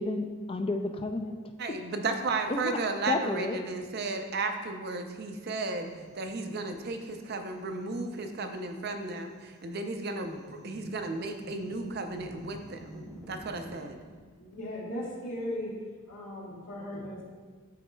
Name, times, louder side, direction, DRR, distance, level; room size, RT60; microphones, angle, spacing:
voice 1, 0.0-1.3 2.5-2.8 3.1-3.6, left 2 dB, 25° left, 6 dB, 0.3 m, -31 dB
voice 2, 1.6-14.0, right 3 dB, 45° right, 6 dB, 0.5 m, -34 dB
sound 1, 5.8-14.2, right 1 dB, ahead, 0.8 m, -51 dB
voice 3, 14.4-15.7 16.1-17.2, left 1 dB, 85° left, -6 dB, 1.9 m, -37 dB
12.0 x 4.1 x 2.3 m, 1.5 s
head